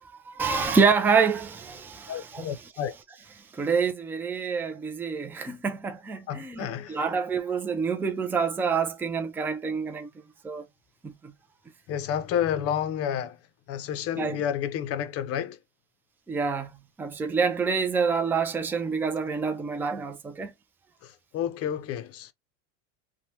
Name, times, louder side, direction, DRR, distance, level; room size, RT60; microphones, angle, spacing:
voice 1, 0.3-2.5 3.6-10.1 10.4-10.6 11.0-11.3 14.2-14.4 16.3-16.7 17.0-20.5, right 5 dB, 5° right, 0.3 m, -27 dB
voice 2, 2.1-2.9 6.3-7.0 11.9-13.4 13.7-15.6 21.0-22.3, left 9 dB, 40° left, 0.6 m, -30 dB
3.0 x 2.2 x 2.8 m
supercardioid pair, 120°, 37 cm